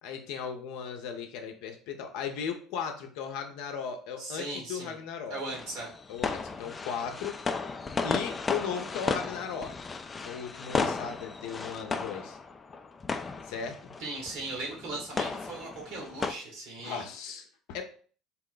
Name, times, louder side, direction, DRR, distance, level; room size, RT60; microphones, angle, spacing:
voice 1, 0.0-5.4 6.1-7.4 8.0-9.8 10.2-12.4 13.4-13.9 16.8-17.8, left 7 dB, 70° left, 4 dB, 0.7 m, -37 dB
voice 2, 4.2-5.0 5.3-5.9 14.0-17.1, right 2 dB, 70° right, -1 dB, 1.8 m, -38 dB
sound 1, 5.5-16.3, left 4 dB, 30° left, 0.4 m, -34 dB
4.1 x 2.2 x 3.9 m, 0.43 s
hypercardioid pair, 65°, 0 cm